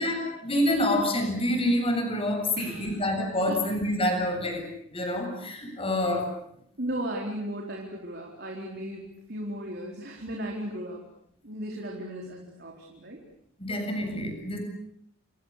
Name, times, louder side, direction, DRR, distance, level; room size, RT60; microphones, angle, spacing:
voice 1, 0.0-4.6 4.9-6.3 13.6-14.6, left 1 dB, 25° left, 4 dB, 7.5 m, -27 dB
voice 2, 2.6-2.9 3.4-3.7 6.8-11.0 11.4-13.2, right 1 dB, 50° right, 0 dB, 4.4 m, -36 dB
29.0 x 28.0 x 6.8 m, 0.71 s
head